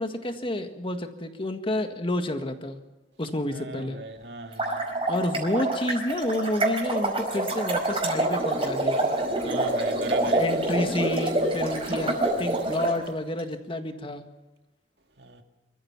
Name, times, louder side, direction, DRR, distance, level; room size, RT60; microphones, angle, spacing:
voice 1, 0.0-2.8 3.2-4.0 4.6-4.8 5.1-9.2 9.7-10.0 10.3-14.3, left 1 dB, 30° left, 1.7 m, -30 dB
voice 2, 3.5-4.9 9.4-10.4 15.2-15.4, right 3 dB, 70° right, 2.2 m, -36 dB
sound 1, 4.4-12.9, right 2 dB, 30° right, 4.7 m, -26 dB
25.5 x 14.5 x 7.4 m
head